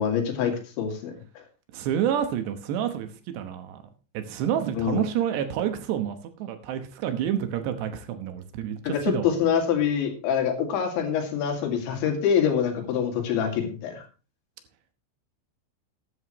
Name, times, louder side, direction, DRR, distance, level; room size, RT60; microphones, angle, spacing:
voice 1, 0.0-1.4 4.8-5.0 8.8-14.1, left 8 dB, 80° left, 3 dB, 4.5 m, -25 dB
voice 2, 1.7-3.8 4.1-9.3, right 10 dB, 75° right, 8 dB, 3.1 m, -29 dB
14.0 x 11.0 x 3.0 m, 0.34 s
omnidirectional pair, 5.2 m